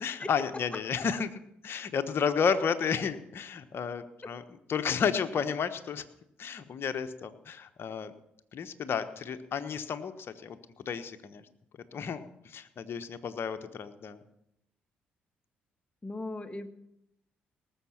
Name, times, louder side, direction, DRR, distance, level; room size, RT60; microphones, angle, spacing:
voice 1, 0.0-4.4 4.7-6.0 6.4-8.1 8.5-11.4 11.9-14.2, left 6 dB, 55° left, 9 dB, 1.1 m, -32 dB
voice 2, 16.0-16.7, left 2 dB, 25° left, 8 dB, 1.5 m, -38 dB
18.5 x 7.3 x 5.9 m, 0.78 s
hypercardioid pair, 45°, 5 cm